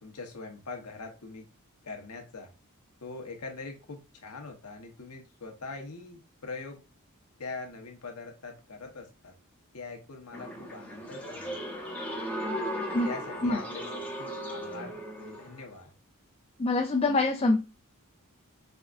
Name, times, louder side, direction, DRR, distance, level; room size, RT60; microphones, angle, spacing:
voice 1, 0.0-1.4 1.8-2.5 3.0-6.8 7.4-9.3 9.7-11.6 13.0-15.9, left 3 dB, 90° left, 3 dB, 1.1 m, -42 dB
sound 1, 10.3-15.7, equal, 10° left, 0.8 m, -36 dB
voice 2, 16.6-17.6, left 2 dB, 25° left, 2 dB, 0.4 m, -25 dB
4.9 x 3.6 x 2.5 m, 0.31 s
head